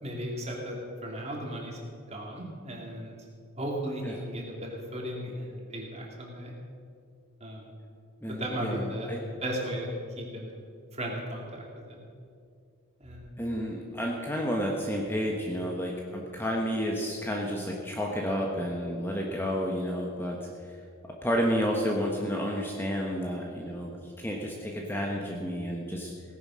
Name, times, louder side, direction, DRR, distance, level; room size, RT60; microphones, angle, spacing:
voice 1, 0.0-0.7 1.0-1.8 2.1-3.1 3.6-6.5 7.4-7.7 8.3-9.1 9.4-9.9 10.1-10.6 10.9-12.0 13.0-13.3 16.2-16.4, right 1 dB, 30° right, -1 dB, 2.5 m, -36 dB
voice 2, 8.2-9.2 13.4-20.7 21.1-26.1, equal, 10° left, -1 dB, 1.1 m, -31 dB
17.0 x 9.9 x 6.3 m, 2.3 s
head